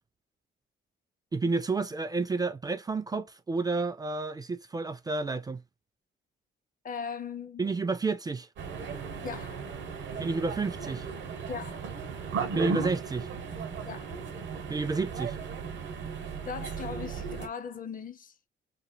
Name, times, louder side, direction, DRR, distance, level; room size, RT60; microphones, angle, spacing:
voice 1, 1.3-5.6 7.6-8.5 10.2-11.1 12.5-13.3 14.7-15.4, right 3 dB, 20° right, 0.3 m, -30 dB
voice 2, 6.8-7.6 9.2-9.6 11.5-11.8 13.8-14.1 16.4-18.3, left 6 dB, 45° left, 0.6 m, -38 dB
sound 1, 8.6-17.5, right 5 dB, 70° right, 1.0 m, -36 dB
3.0 x 2.7 x 2.2 m
cardioid pair, 90°, 20 cm